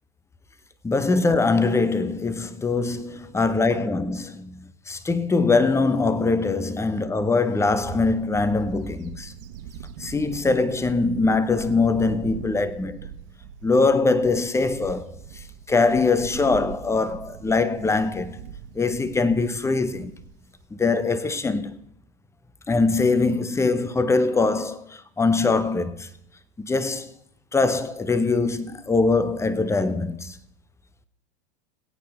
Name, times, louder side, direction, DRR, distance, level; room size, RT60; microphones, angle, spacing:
voice 1, 0.8-9.3 10.0-13.0 13.6-18.4 18.7-20.1 20.7-21.8 22.7-26.1 26.6-27.1 27.5-30.4, left 3 dB, 10° left, 0.7 m, -22 dB
Bird / Wind, 7.8-20.6, right 8 dB, 60° right, 1.5 m, -41 dB
22.0 x 8.6 x 3.5 m
hypercardioid pair, 110°, 31 cm